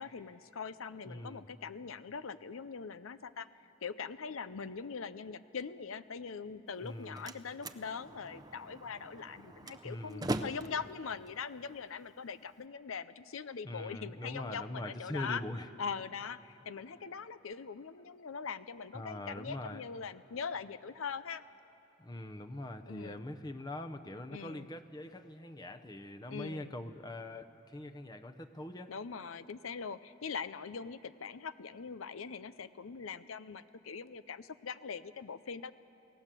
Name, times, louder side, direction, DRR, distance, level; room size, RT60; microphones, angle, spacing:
voice 1, 0.0-3.5 3.8-15.4 15.8-21.4 22.8-23.2 24.3-24.7 26.3-26.7 28.9-35.7, left 5 dB, 85° left, 14 dB, 0.6 m, -42 dB
voice 2, 1.1-1.4 6.8-7.2 9.8-10.3 13.6-15.7 18.9-19.8 22.0-28.9, left 1 dB, 20° left, 6 dB, 0.8 m, -43 dB
Slam, 6.7-12.7, right 1 dB, 20° right, 0.7 m, -42 dB
28.0 x 18.0 x 7.6 m, 3.0 s
head